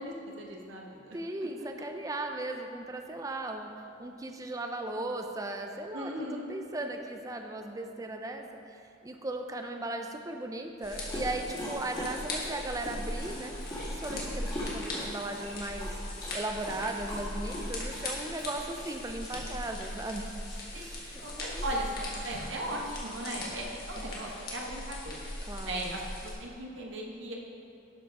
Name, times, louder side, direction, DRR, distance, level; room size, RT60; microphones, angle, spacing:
voice 1, 0.0-1.5 5.9-6.5 20.7-25.2 25.6-27.4, right 1 dB, 80° right, -1 dB, 1.2 m, -38 dB
voice 2, 1.1-3.7 4.0-8.5 9.0-13.5 13.9-16.0 16.3-20.3 20.8-21.6 22.7-22.8 24.0-24.1 25.4-26.0, right 2 dB, 15° right, 4 dB, 0.4 m, -37 dB
sound 1, 10.8-26.3, left 1 dB, 50° left, 1.7 m, -39 dB
Dog, 10.9-22.5, left 1 dB, 25° left, 2.0 m, -43 dB
11.5 x 4.8 x 4.8 m, 2.6 s
head